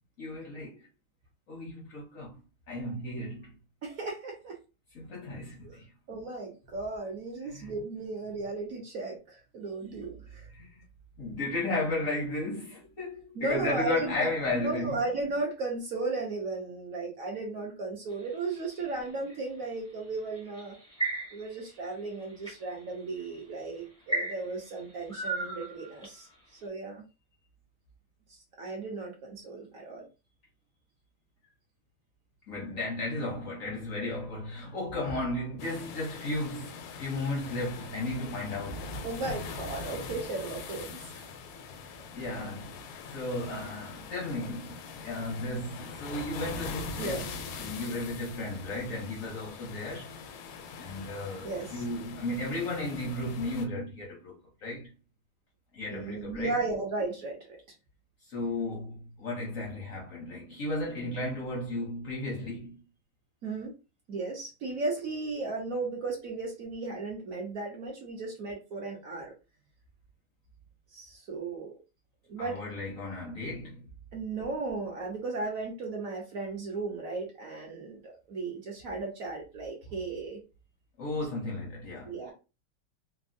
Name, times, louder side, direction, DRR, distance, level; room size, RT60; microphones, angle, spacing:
voice 1, 0.2-0.8 1.5-2.4 2.7-3.5 4.9-5.9 7.5-7.7 9.8-10.0 10.5-10.8 11.2-15.0 32.5-38.9 42.1-42.7 43.1-44.7 45.0-47.3 47.6-50.1 50.7-54.9 55.7-56.6 58.3-62.8 72.4-73.8 81.0-82.3, left 2 dB, 60° left, 0.8 m, -34 dB
voice 2, 3.8-4.6 5.6-5.8 6.1-10.5 13.3-20.8 21.3-26.3 26.6-27.0 28.6-30.1 39.0-41.3 45.4-45.6 47.0-47.3 51.4-51.8 55.9-57.6 63.4-63.7 64.1-69.3 70.9-71.8 72.3-72.6 74.1-80.4 82.1-82.3, right 3 dB, 60° right, 0.9 m, -35 dB
sound 1, 18.1-19.4 20.4-21.6 22.1-22.6 23.3-23.4 24.1-26.3, right 3 dB, 5° left, 0.5 m, -34 dB
sound 2, 35.6-53.7, left 4 dB, 80° left, 1.4 m, -42 dB
3.4 x 2.1 x 2.5 m
omnidirectional pair, 2.3 m